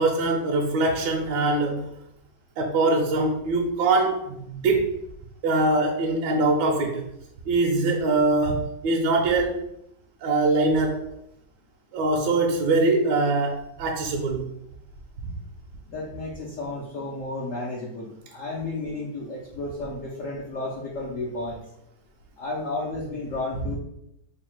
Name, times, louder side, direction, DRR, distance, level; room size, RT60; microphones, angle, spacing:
voice 1, 0.0-1.8 2.6-5.0 5.4-7.0 7.5-9.6 10.2-11.0 11.9-14.4 15.2-15.3, right 2 dB, 70° right, 1 dB, 1.1 m, -23 dB
voice 2, 15.9-21.6 22.4-23.8, left 2 dB, 70° left, -3 dB, 0.7 m, -32 dB
3.3 x 2.3 x 4.3 m, 0.77 s
omnidirectional pair, 2.2 m